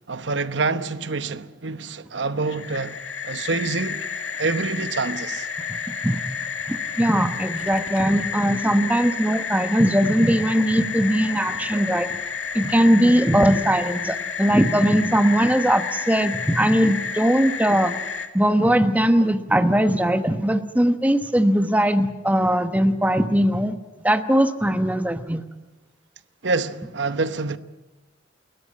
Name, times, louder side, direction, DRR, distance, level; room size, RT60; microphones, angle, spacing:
voice 1, 0.1-3.0 3.2-4.0 4.4-5.5 26.4-27.6, right 3 dB, 70° right, 1.0 m, -26 dB
sound 1, 2.4-18.3, left 6 dB, 80° left, 2.1 m, -31 dB
voice 2, 6.7-12.1 12.5-17.9 18.3-23.7 24.0-25.4, equal, 10° right, 1.1 m, -20 dB
29.5 x 14.0 x 8.5 m
head